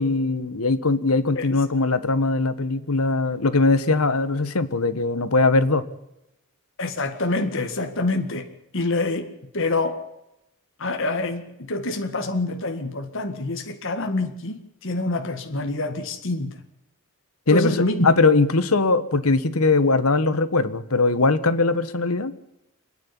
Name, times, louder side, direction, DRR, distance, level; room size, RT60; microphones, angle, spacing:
voice 1, 0.0-5.8 17.5-17.7 18.0-22.3, left 3 dB, 90° left, 13 dB, 1.4 m, -20 dB
voice 2, 6.8-8.5 8.7-10.0 10.8-16.6 17.5-18.1, left 2 dB, 60° left, 5 dB, 1.9 m, -26 dB
27.5 x 9.8 x 10.0 m, 0.85 s
head